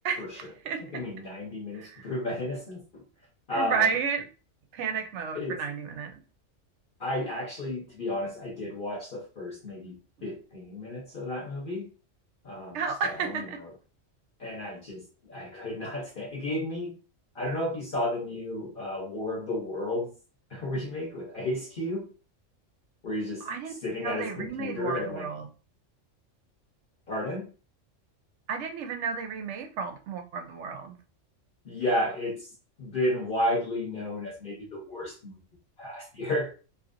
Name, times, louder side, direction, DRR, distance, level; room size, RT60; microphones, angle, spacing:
voice 1, 0.0-1.1 1.7-2.1 3.5-4.3 4.7-6.2 12.7-13.6 23.4-23.7 24.0-25.5 28.5-31.0, right 6 dB, 70° right, 6 dB, 0.9 m, -32 dB
voice 2, 0.9-3.0 3.5-3.9 5.3-5.6 7.0-10.0 10.2-11.9 12.4-13.7 14.4-16.9 17.3-20.1 20.5-22.1 23.0-23.5 23.8-25.3 27.1-27.5 31.6-32.5 32.8-35.4 35.8-36.5, left 1 dB, 45° left, -2 dB, 0.9 m, -32 dB
2.7 x 2.6 x 2.5 m, 0.34 s
omnidirectional pair, 1.3 m